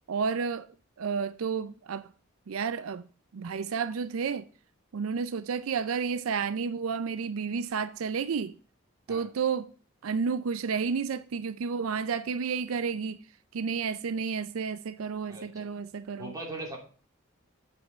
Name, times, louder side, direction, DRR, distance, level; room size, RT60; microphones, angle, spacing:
voice 1, 0.1-0.7 1.0-2.1 2.5-3.1 3.3-4.5 4.9-8.5 9.1-9.7 10.0-13.2 13.5-16.3, right 5 dB, 85° right, 0.4 m, -31 dB
voice 2, 15.3-15.7 16.2-16.8, right 2 dB, 15° right, 2.9 m, -40 dB
8.1 x 5.4 x 5.4 m
head